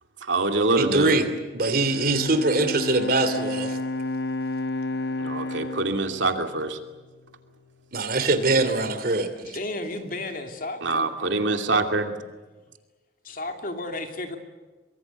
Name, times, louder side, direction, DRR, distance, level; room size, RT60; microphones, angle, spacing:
voice 1, 0.2-1.2 5.2-6.8 10.8-12.1, right 3 dB, 85° right, 6 dB, 2.6 m, -24 dB
voice 2, 0.8-1.3 1.5-3.8 7.9-9.6, right 2 dB, 50° right, 9 dB, 3.0 m, -23 dB
Bowed string instrument, 1.6-7.0, left 2 dB, 65° left, 1.0 m, -31 dB
voice 3, 9.4-11.1 13.2-14.4, left 2 dB, 50° left, 5 dB, 2.8 m, -33 dB
24.5 x 23.0 x 8.2 m, 1.3 s
head